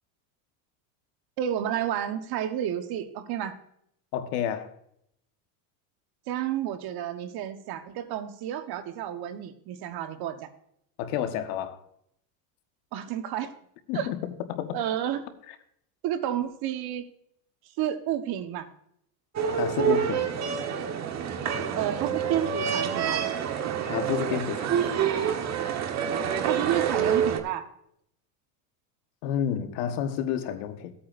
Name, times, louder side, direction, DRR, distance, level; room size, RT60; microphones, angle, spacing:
voice 1, 1.4-3.6 6.3-10.5 12.9-13.5 13.9-14.1 14.7-15.2 16.0-17.1 17.8-18.7 21.7-23.2 26.4-27.7, right 11 dB, 55° right, 1.2 m, -30 dB
voice 2, 4.1-4.7 11.0-11.8 13.9-14.8 19.6-20.3 23.8-25.1 29.2-30.9, left 9 dB, 70° left, 1.4 m, -30 dB
sound 1, 19.4-27.4, right 8 dB, 35° right, 1.3 m, -27 dB
16.5 x 8.5 x 2.6 m
supercardioid pair, 115°, 45 cm